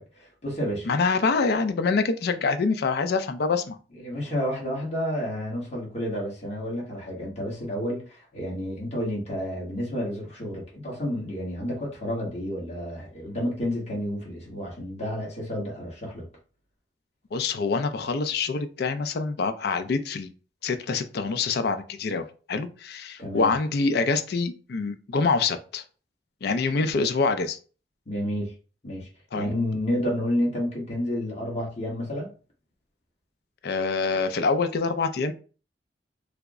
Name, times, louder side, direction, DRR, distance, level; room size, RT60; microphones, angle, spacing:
voice 1, 0.0-0.9 3.9-16.3 23.2-23.5 28.1-28.5 28.8-29.1 29.3-32.3, equal, 40° left, 1.3 m, -30 dB
voice 2, 0.8-3.8 17.3-20.3 20.6-25.8 26.4-27.6 29.3-29.5 33.6-35.3, left 4 dB, 65° left, 0.4 m, -25 dB
3.3 x 2.0 x 3.5 m
head